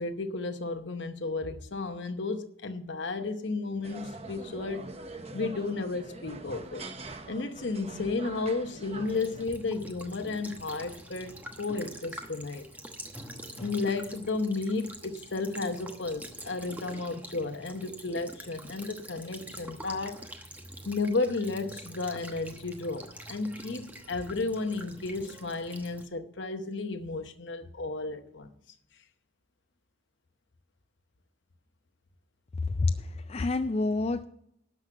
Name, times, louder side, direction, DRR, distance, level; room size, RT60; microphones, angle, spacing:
voice 1, 0.0-4.9 5.3-6.8 7.3-12.6 13.6-20.3 20.8-28.5, left 3 dB, 60° left, 0.9 m, -33 dB
sound 1, 3.8-9.5, right 2 dB, 30° right, 0.8 m, -43 dB
Child speech kid speaking / Bird vocalization bird call bird song / Stream, 9.0-26.0, right 1 dB, 10° right, 1.0 m, -45 dB
voice 2, 32.8-34.2, left 3 dB, 30° left, 0.3 m, -28 dB
12.0 x 6.1 x 7.9 m
head